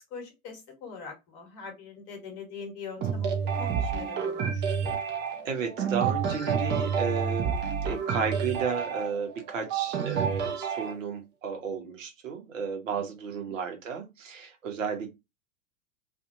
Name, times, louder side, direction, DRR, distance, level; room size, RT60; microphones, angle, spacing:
voice 1, 0.1-5.0 13.4-13.6, left 5 dB, 35° left, 1.3 m, -43 dB
sound 1, 3.0-10.9, right 7 dB, 25° right, 0.7 m, -29 dB
voice 2, 5.4-15.1, right 6 dB, 60° right, 1.1 m, -33 dB
2.7 x 2.6 x 2.6 m
figure-of-eight pair, 100°, 43 cm